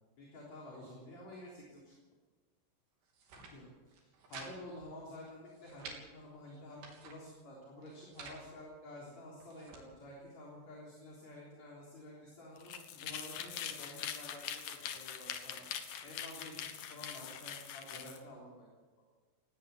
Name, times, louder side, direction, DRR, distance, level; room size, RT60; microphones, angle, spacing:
voice 1, 0.2-2.0 3.5-3.7 4.0-15.6 16.0-18.7, left 1 dB, 40° left, -3 dB, 4.4 m, -50 dB
sound 1, 3.0-3.5 3.9-4.5 4.8-4.9 5.3-6.0 6.5-7.2 7.8-8.4 9.1-9.8, right 4 dB, 65° right, 5.4 m, -51 dB
sound 2, 12.6-18.2, left 9 dB, 65° left, 2.2 m, -43 dB
19.0 x 16.5 x 8.3 m, 1.4 s
omnidirectional pair, 5.4 m